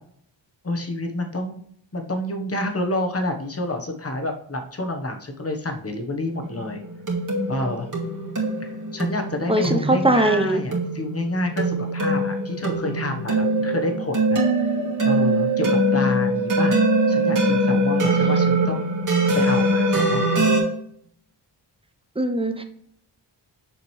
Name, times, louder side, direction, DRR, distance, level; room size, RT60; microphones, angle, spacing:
voice 1, 0.6-1.6 1.9-6.8 7.5-7.9 8.7-14.5 15.0-16.8 17.1-18.8 19.3-20.4, left 1 dB, 30° left, 3 dB, 1.2 m, -28 dB
sound 1, 6.4-20.6, right 1 dB, 40° right, 2.2 m, -22 dB
voice 2, 9.5-10.6 22.2-22.6, right 1 dB, 10° right, 6 dB, 0.8 m, -20 dB
7.1 x 5.1 x 3.2 m, 0.66 s
wide cardioid pair, 105°, 45 cm